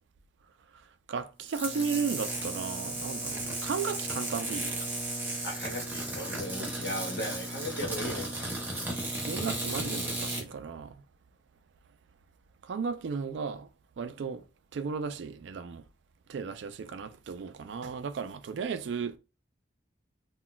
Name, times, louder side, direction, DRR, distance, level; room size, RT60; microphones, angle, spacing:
voice 1, 1.1-4.7 9.2-10.9 12.7-13.7 14.0-14.4 14.7-15.8 16.3-19.2, right 5 dB, 70° right, 0.4 m, -34 dB
sound 1, 1.5-10.4, right 2 dB, 10° right, 0.6 m, -35 dB
voice 2, 5.4-8.3, left 1 dB, 60° left, 1.0 m, -37 dB
2.3 x 2.1 x 3.8 m
head